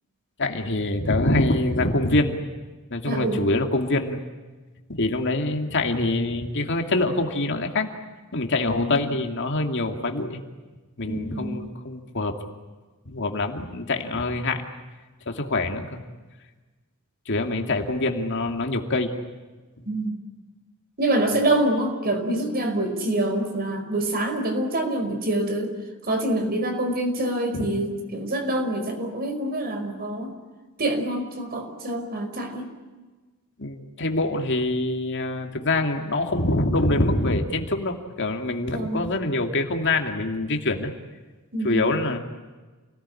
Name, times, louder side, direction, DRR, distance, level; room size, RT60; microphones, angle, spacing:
voice 1, 0.4-2.4 2.9-4.2 4.9-7.9 8.3-10.4 11.0-12.3 13.1-14.6 15.3-16.0 17.3-19.1 27.5-27.7 33.6-40.9 41.6-42.2, left 2 dB, 55° left, 4 dB, 2.6 m, -25 dB
voice 2, 3.1-3.4 8.6-9.0 11.1-11.5 19.9-20.1 21.0-25.7 26.1-30.3 30.8-32.7 38.7-39.0 41.5-41.9, right 1 dB, 45° right, 6 dB, 5.0 m, -26 dB
29.0 x 19.5 x 9.9 m, 1.3 s
head